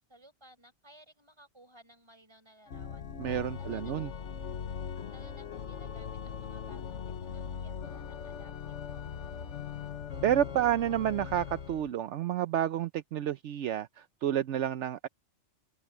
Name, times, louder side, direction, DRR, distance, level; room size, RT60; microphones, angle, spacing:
voice 1, 0.1-3.0 3.6-4.4 4.8-9.3, equal, 20° right, 4.9 m, -59 dB
Organ, 2.7-11.9, left 7 dB, 70° left, 1.4 m, -40 dB
voice 2, 3.2-4.1 10.2-15.1, right 11 dB, 75° right, 0.9 m, -30 dB
omnidirectional pair, 1.3 m